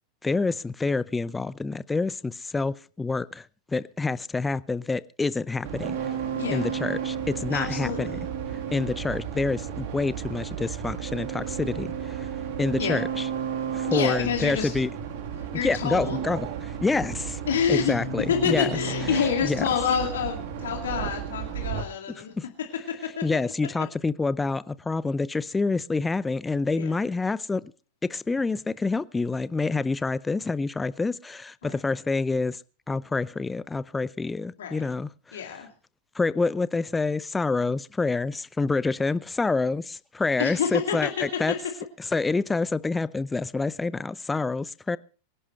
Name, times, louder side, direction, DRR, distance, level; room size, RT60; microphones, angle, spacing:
voice 1, 0.2-6.0 6.5-8.2 8.7-12.3 12.6-13.3 13.7-14.9 15.6-17.4 17.7-18.7 19.1-19.7 22.4-22.5 23.2-27.7 28.0-32.6 32.9-35.4 36.1-41.5 42.0-45.0, left 3 dB, 10° left, 0.6 m, -27 dB
sound 1, 5.6-21.8, right 7 dB, 50° right, 2.4 m, -33 dB
voice 2, 6.4-6.7 7.5-8.2 12.8-13.0 13.9-14.7 15.5-16.2 17.5-17.9 18.3-22.3 23.2-23.3 26.7-26.9 31.6-31.7 34.6-34.8 35.3-35.7 40.4-41.1, left 7 dB, 60° left, 2.3 m, -27 dB
24.5 x 11.0 x 3.2 m
figure-of-eight pair, 90°, 0 cm